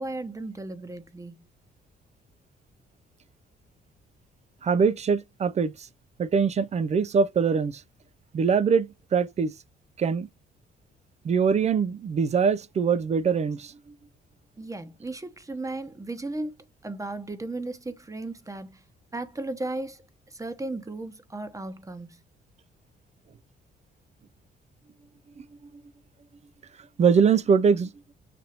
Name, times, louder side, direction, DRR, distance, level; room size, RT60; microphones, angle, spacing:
voice 1, 0.0-1.4 14.6-16.5 16.8-18.8 19.1-20.0 20.3-22.2, right 2 dB, 15° right, 0.9 m, -35 dB
voice 2, 4.6-5.9 6.2-7.8 8.3-9.5 10.0-10.3 11.2-13.7 27.0-27.9, right 6 dB, 35° right, 0.4 m, -23 dB
6.8 x 2.7 x 2.8 m
cardioid pair, 90°, 20 cm